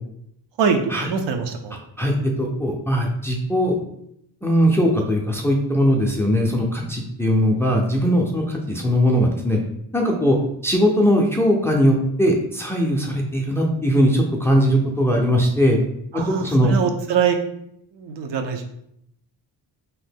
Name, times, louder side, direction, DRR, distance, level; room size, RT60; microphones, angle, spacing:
voice 1, 0.6-1.8 16.1-17.4 17.9-18.6, right 6 dB, 80° right, 6 dB, 0.6 m, -23 dB
voice 2, 2.0-3.8 4.4-9.6 9.9-10.4 10.6-15.8 16.1-16.8, equal, 5° left, 0 dB, 0.3 m, -20 dB
2.8 x 2.1 x 3.4 m, 0.75 s
cardioid pair, 105°, 42 cm